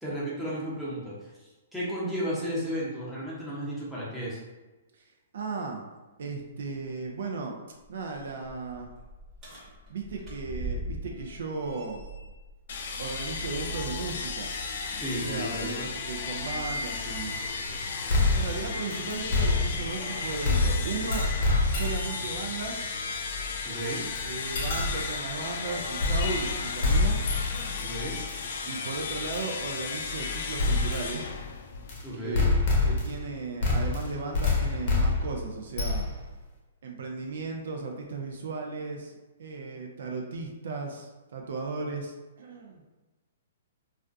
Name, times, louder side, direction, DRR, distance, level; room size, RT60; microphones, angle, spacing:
voice 1, 0.0-4.4 14.9-15.9 16.3-16.5 23.6-24.1 27.8-28.2 32.0-32.5, equal, ahead, -9 dB, 0.8 m, -34 dB
voice 2, 5.0-5.9 6.2-7.6 7.9-8.9 9.9-12.0 13.0-14.5 15.1-17.7 18.1-21.3 21.7-22.9 24.2-27.8 28.7-31.3 32.2-36.1 36.8-42.8, right 4 dB, 70° right, 1 dB, 0.4 m, -36 dB
sound 1, 7.8-14.4 14.8-15.0 17.4-19.9 20.8-20.9 21.8-21.9, right 1 dB, 25° right, 0.9 m, -43 dB
sound 2, 12.7-32.1, left 4 dB, 60° left, 0.3 m, -34 dB
sound 3, 18.1-20.0 20.4-22.2 24.2-24.3 24.5-25.2 26.0-26.5 26.8-27.9 28.3-28.4 29.3-29.5 30.6-31.1 31.9-32.0 32.3-33.3 33.6-36.3, left 3 dB, 45° left, 0.7 m, -26 dB
2.4 x 2.1 x 2.5 m, 1.2 s
hypercardioid pair, 130°, 0 cm